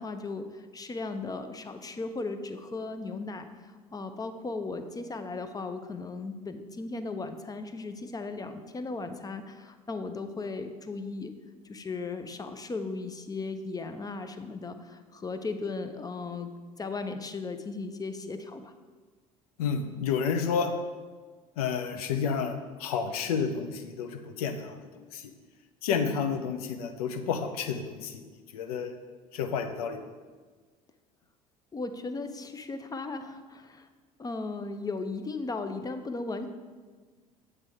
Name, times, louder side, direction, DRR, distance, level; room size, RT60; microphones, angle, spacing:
voice 1, 0.0-11.3 11.6-16.5 16.8-18.7 31.7-33.9 34.2-36.5, left 3 dB, 20° left, 8 dB, 0.5 m, -36 dB
voice 2, 19.6-20.7 21.6-25.3 25.8-28.2 28.5-29.0 29.3-30.0, left 6 dB, 75° left, 7 dB, 0.6 m, -30 dB
7.4 x 3.3 x 4.7 m, 1.4 s
hypercardioid pair, 60°, 19 cm